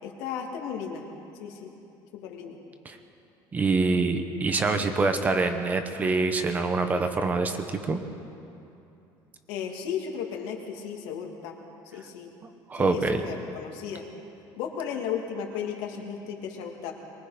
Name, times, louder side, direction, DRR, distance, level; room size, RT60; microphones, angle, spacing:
voice 1, 0.0-1.0 1.4-1.7 2.1-2.6 9.5-11.6 11.9-12.3 12.7-14.1 14.6-16.9, left 7 dB, 75° left, 1 dB, 2.8 m, -35 dB
voice 2, 3.5-8.0 12.7-13.2, right 3 dB, 20° right, 7 dB, 1.0 m, -25 dB
23.0 x 22.0 x 5.2 m, 2.8 s
cardioid pair, 175°, 9 cm